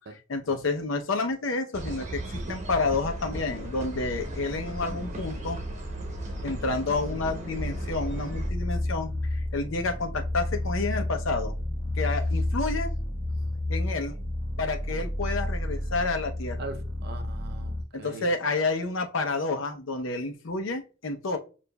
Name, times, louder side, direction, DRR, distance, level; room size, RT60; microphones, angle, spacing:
voice 1, 0.3-5.6 6.4-11.6 12.0-12.9 13.7-14.2 14.6-16.7 17.9-21.4, left 3 dB, 90° left, 0.7 m, -29 dB
sound 1, 1.7-8.5, right 1 dB, 40° right, 1.0 m, -35 dB
sound 2, 7.5-17.8, left 1 dB, 45° left, 1.2 m, -31 dB
voice 2, 16.6-18.3, right 3 dB, 55° right, 0.6 m, -41 dB
6.9 x 2.5 x 2.2 m
head